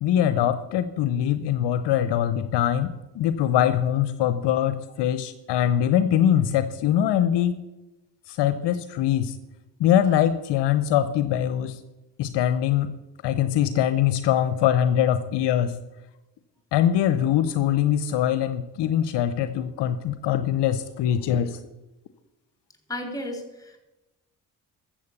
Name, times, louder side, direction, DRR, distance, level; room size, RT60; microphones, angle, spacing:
voice 1, 0.0-7.6 8.3-9.4 9.8-11.8 12.2-13.0 13.2-15.8 16.7-21.6, left 10 dB, 75° left, 11 dB, 0.8 m, -23 dB
voice 2, 22.9-23.8, left 1 dB, 10° left, 3 dB, 3.9 m, -33 dB
13.5 x 7.6 x 6.7 m, 1.0 s
hypercardioid pair, 50°, 43 cm